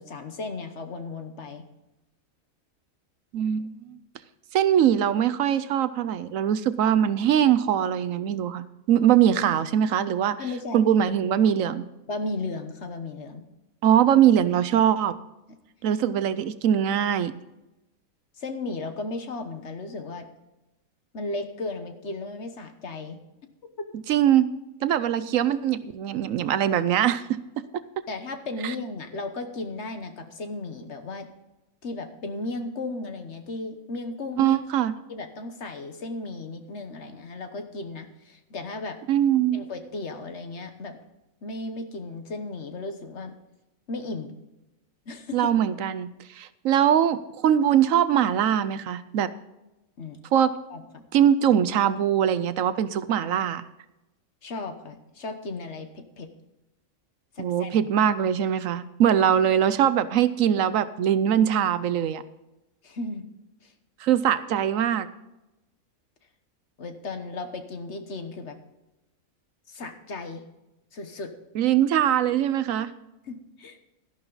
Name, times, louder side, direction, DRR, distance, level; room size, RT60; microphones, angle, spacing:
voice 1, 0.0-1.6 10.4-10.8 12.1-13.4 18.4-20.3 21.1-23.2 28.1-31.3 31.8-34.6 35.1-39.0 39.5-41.0 41.4-43.3 43.9-44.3 45.1-45.5 50.0-50.2 50.7-51.0 54.4-56.3 57.3-57.7 62.8-63.2 63.6-63.7 66.8-68.6 69.7-70.4 70.9-71.3 73.2-73.8, left 3 dB, 55° left, 7 dB, 1.4 m, -35 dB
voice 2, 3.3-4.0 4.5-10.4 10.7-11.8 13.8-15.1 15.8-17.3 24.1-24.5 24.8-27.2 28.6-28.7 34.4-34.9 39.1-39.6 45.3-46.1 46.3-49.3 50.3-50.5 51.1-53.6 57.4-62.2 64.0-65.1 71.5-72.9, right 10 dB, 70° right, 14 dB, 1.0 m, -22 dB
12.5 x 11.5 x 3.9 m, 0.97 s
omnidirectional pair, 1.5 m